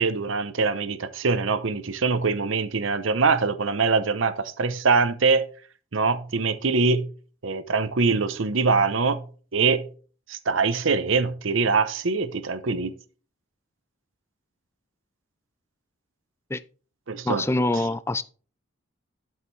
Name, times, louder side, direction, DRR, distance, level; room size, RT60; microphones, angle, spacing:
voice 1, 0.0-5.4 5.9-7.1 7.4-9.2 9.5-9.9 10.3-12.9 17.1-17.4, right 4 dB, 65° right, 0.7 m, -23 dB
voice 2, 17.2-18.2, left 2 dB, 10° left, 0.4 m, -25 dB
12.0 x 5.7 x 3.2 m
head